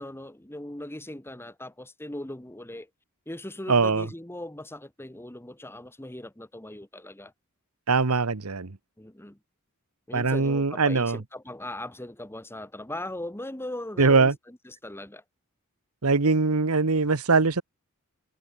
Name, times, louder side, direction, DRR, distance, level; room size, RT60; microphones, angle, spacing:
voice 1, 0.0-2.9 3.3-7.3 9.0-9.4 10.1-15.2, left 1 dB, 10° left, 1.5 m, -39 dB
voice 2, 3.7-4.1 7.9-8.8 10.1-11.2 14.0-14.3 16.0-17.6, right 4 dB, 80° right, 1.2 m, -22 dB
head